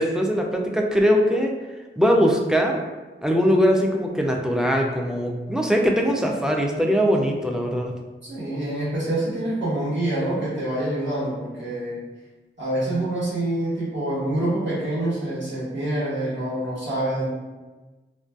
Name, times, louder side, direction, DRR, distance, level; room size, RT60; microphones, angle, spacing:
voice 1, 0.0-1.6 2.0-2.8 3.2-7.9, equal, 5° right, 1 dB, 0.3 m, -21 dB
voice 2, 8.2-12.0 12.6-17.3, right 1 dB, 60° right, -9 dB, 1.2 m, -26 dB
2.5 x 2.2 x 2.3 m, 1.2 s
wide cardioid pair, 50°, 21 cm